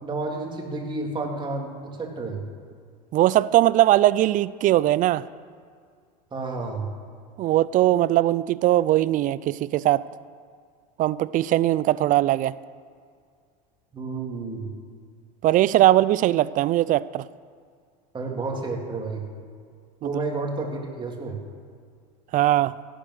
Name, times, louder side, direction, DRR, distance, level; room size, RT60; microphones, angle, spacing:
voice 1, 0.0-2.4 6.3-6.9 13.9-14.7 18.1-19.3 20.0-21.4, right 3 dB, 20° right, 0 dB, 3.3 m, -31 dB
voice 2, 3.1-5.2 7.4-10.0 11.0-12.5 15.4-17.2 20.0-20.1 22.3-22.7, right 14 dB, 40° right, 18 dB, 0.5 m, -20 dB
17.5 x 9.0 x 6.5 m, 2.1 s
hypercardioid pair, 100°, 21 cm